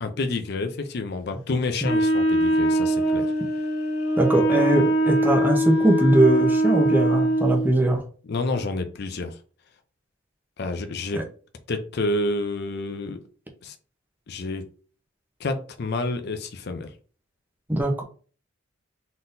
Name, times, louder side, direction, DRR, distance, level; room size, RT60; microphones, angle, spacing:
voice 1, 0.0-3.3 8.2-9.4 10.6-11.2 11.7-13.2 13.6-13.8 14.3-14.7 15.4-16.9, left 2 dB, 50° left, 0.5 m, -29 dB
Wind instrument woodwind instrument, 1.8-7.7, right 1 dB, 90° left, 1.4 m, -22 dB
voice 2, 4.2-8.0 11.1-11.2 17.7-18.0, right 1 dB, 10° right, 0.8 m, -21 dB
4.0 x 3.8 x 2.6 m
head